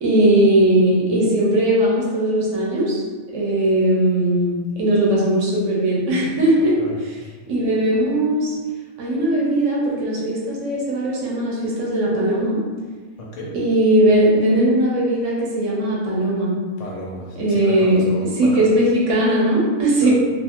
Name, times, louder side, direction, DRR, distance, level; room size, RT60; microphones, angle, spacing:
voice 1, 0.0-3.0 3.3-6.7 7.5-8.5 9.0-12.6 13.5-16.5 17.4-18.0 18.4-20.1, right 1 dB, 65° right, -5 dB, 1.0 m, -18 dB
voice 2, 6.8-7.3 13.2-13.5 16.8-18.6 20.0-20.1, left 1 dB, 70° left, -3 dB, 0.8 m, -34 dB
2.5 x 2.4 x 2.8 m, 1.5 s
omnidirectional pair, 1.5 m